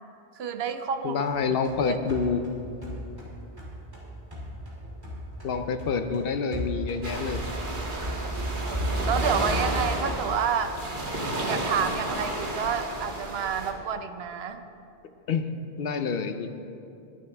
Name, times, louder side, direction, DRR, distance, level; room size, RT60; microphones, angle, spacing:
voice 1, 0.4-1.2 1.9-2.0 8.4-10.8 11.5-14.6, right 6 dB, 75° right, 9 dB, 0.9 m, -29 dB
voice 2, 1.0-2.5 5.4-7.4 15.3-15.4 15.8-16.5, left 5 dB, 70° left, 8 dB, 0.9 m, -27 dB
sound 1, 1.3-5.5 5.8-10.2, equal, 20° right, 2.6 m, -34 dB
sound 2, 7.0-13.7, right 1 dB, 55° right, 1.5 m, -32 dB
22.0 x 7.7 x 3.4 m, 2.7 s
omnidirectional pair, 1.1 m